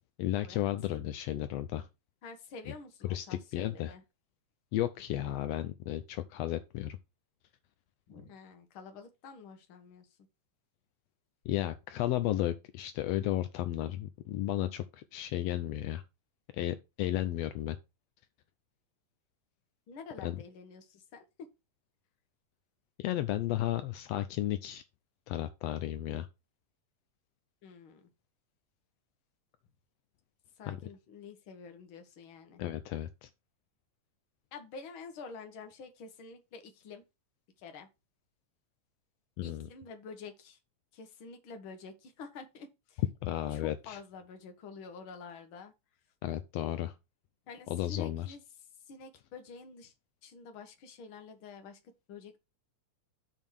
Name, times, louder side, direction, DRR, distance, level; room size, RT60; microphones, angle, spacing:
voice 1, 0.2-1.9 3.0-3.9 4.7-7.0 11.4-16.0 16.6-17.8 20.2-20.4 23.0-24.8 25.3-26.3 30.6-30.8 32.6-33.3 39.4-39.7 43.2-44.0 46.2-46.9 47.7-48.4, left 13 dB, 80° left, 1.5 m, -33 dB
voice 2, 2.2-4.0 8.1-10.1 17.0-17.2 19.9-21.2 27.6-28.1 30.6-32.6 34.5-37.0 37.6-37.9 39.4-40.6 40.9-43.0 43.5-45.7 47.5-48.4 48.9-49.9 50.2-51.8 52.1-52.4, left 5 dB, 55° left, 1.7 m, -48 dB
7.2 x 3.7 x 6.4 m
omnidirectional pair, 3.4 m